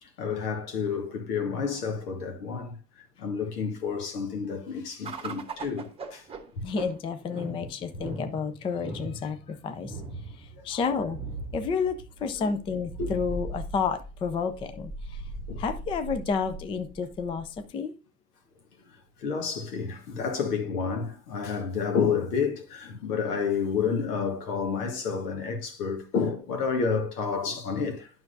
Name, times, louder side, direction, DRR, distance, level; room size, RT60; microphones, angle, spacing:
voice 1, 0.0-2.8 3.2-6.2 6.5-6.6 10.6-10.8 12.4-12.5 13.0-13.1 15.5-15.6 19.2-28.1, left 5 dB, 75° left, 1.7 m, -30 dB
sound 1, 5.0-17.7, right 2 dB, 10° right, 1.2 m, -39 dB
voice 2, 6.6-10.0 10.3-11.2 11.5-15.3 15.6-17.9, left 5 dB, 10° left, 0.4 m, -31 dB
9.3 x 6.0 x 2.6 m
hypercardioid pair, 95°, 47 cm